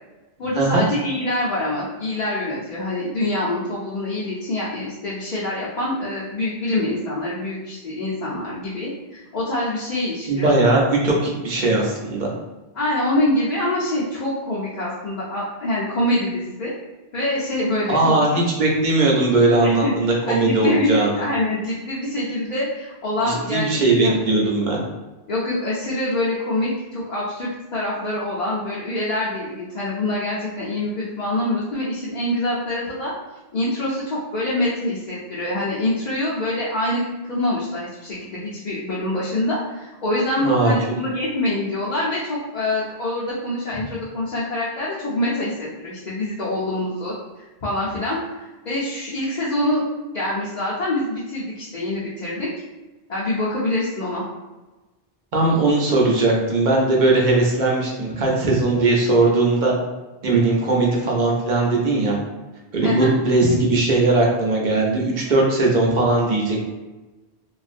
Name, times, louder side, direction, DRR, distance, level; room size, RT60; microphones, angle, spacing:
voice 1, 0.4-10.5 12.7-16.7 17.1-18.4 19.6-19.9 20.3-24.5 25.3-33.1 33.5-47.1 47.6-49.8 50.1-52.5 53.1-54.2 62.8-63.1, left 1 dB, 50° left, -8 dB, 0.6 m, -25 dB
voice 2, 10.3-12.3 17.9-21.1 23.2-24.8 40.4-40.7 55.3-59.7 60.2-62.2 62.7-66.6, right 2 dB, 50° right, -2 dB, 0.8 m, -19 dB
2.9 x 2.4 x 2.5 m, 1.1 s
omnidirectional pair, 1.0 m